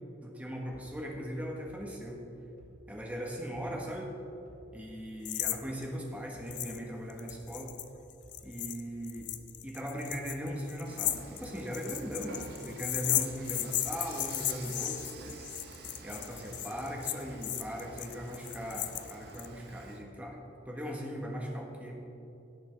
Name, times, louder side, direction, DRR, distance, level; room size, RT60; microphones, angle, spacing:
voice 1, 0.2-2.2 2.9-4.1 4.7-7.7 8.4-9.3 9.6-15.1 16.0-21.9, equal, 10° right, -1 dB, 1.3 m, -39 dB
sound 1, 0.7-4.1 4.5-6.9 7.3-11.6 12.0-14.4 14.8-15.5, equal, 45° right, 1.6 m, -56 dB
sound 2, 5.3-5.6 5.8-5.9 6.5-6.8 7.1-19.5, left 13 dB, 70° left, 0.5 m, -35 dB
Dishes pots and pans / Frying (food), 10.8-20.0, right 3 dB, 60° right, 0.9 m, -49 dB
17.0 x 7.0 x 3.5 m, 2.9 s
head